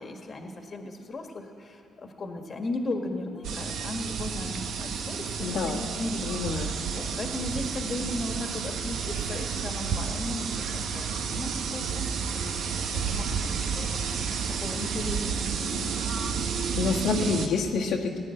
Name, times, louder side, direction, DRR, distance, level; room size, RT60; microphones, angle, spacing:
voice 1, 0.0-6.2 6.6-12.0 12.3-12.4 12.7-14.0 14.6-16.4, left 2 dB, 40° left, 4 dB, 1.5 m, -36 dB
sound 1, 3.4-17.5, right 6 dB, 75° right, 1.1 m, -31 dB
voice 2, 5.4-5.8 6.2-6.7 16.7-18.2, left 4 dB, 85° left, -2 dB, 1.6 m, -28 dB
17.0 x 9.9 x 7.8 m, 2.4 s
cardioid pair, 90°, 0 cm